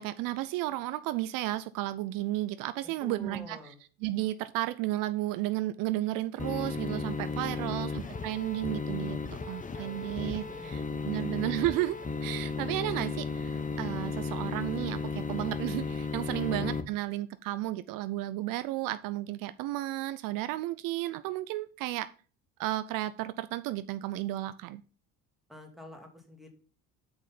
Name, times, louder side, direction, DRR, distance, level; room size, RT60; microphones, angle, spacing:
voice 1, 0.0-3.6 4.0-9.2 9.5-22.1 22.6-24.8, right 16 dB, 70° right, 0.5 m, -33 dB
voice 2, 3.0-3.8 7.2-8.3 9.5-10.1 10.4-11.3 16.2-16.7 25.5-26.5, left 1 dB, ahead, 2.3 m, -49 dB
sound 1, 6.4-16.8, left 4 dB, 20° left, 0.9 m, -34 dB
6.2 x 5.1 x 5.7 m
supercardioid pair, 75°, 34 cm